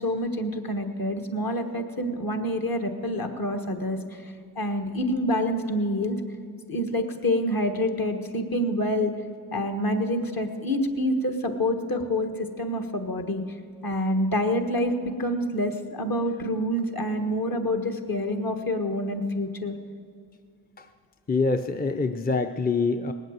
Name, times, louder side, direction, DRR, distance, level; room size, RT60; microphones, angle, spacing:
voice 1, 0.0-6.2 6.7-9.1 9.5-13.4 13.8-19.7, left 1 dB, 50° left, 6 dB, 1.5 m, -27 dB
voice 2, 21.3-23.1, left 4 dB, 20° left, 7 dB, 0.6 m, -25 dB
19.0 x 8.2 x 7.6 m, 2.3 s
cardioid pair, 40°, 44 cm